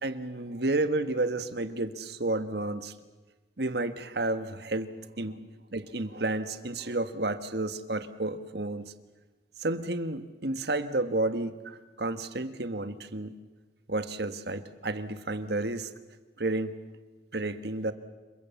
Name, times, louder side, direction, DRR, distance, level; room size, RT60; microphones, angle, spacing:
voice 1, 0.0-2.9 3.6-4.9 5.2-5.4 5.7-8.9 9.6-13.3 13.9-15.9 16.4-16.7 17.3-17.9, right 2 dB, 60° right, 10 dB, 1.5 m, -31 dB
28.0 x 23.0 x 7.2 m, 1.2 s
head